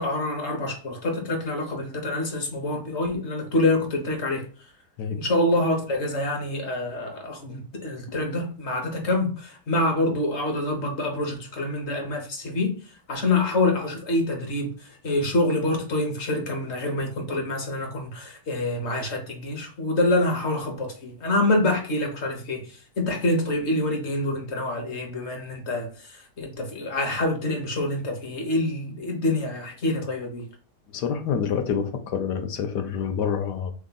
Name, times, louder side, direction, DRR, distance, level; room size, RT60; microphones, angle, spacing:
voice 1, 0.0-4.4 5.2-12.7 13.1-30.5, left 2 dB, 45° left, 1.1 m, -26 dB
voice 2, 30.9-33.7, left 7 dB, 80° left, 1.4 m, -27 dB
3.7 x 3.5 x 3.9 m
omnidirectional pair, 1.8 m